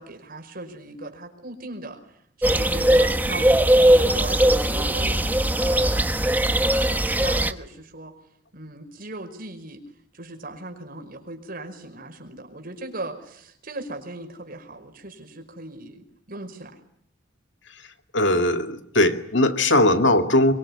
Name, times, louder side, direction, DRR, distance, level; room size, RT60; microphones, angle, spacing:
voice 1, 0.0-8.1 8.5-9.8 10.1-16.8, right 2 dB, 50° right, 5 dB, 5.3 m, -38 dB
Turkey - Evening Birds & Nature Ambiance, 2.4-7.5, right 1 dB, 10° right, 1.1 m, -19 dB
voice 2, 18.1-20.5, left 1 dB, 70° left, 7 dB, 2.3 m, -19 dB
25.0 x 23.5 x 9.9 m, 0.70 s
head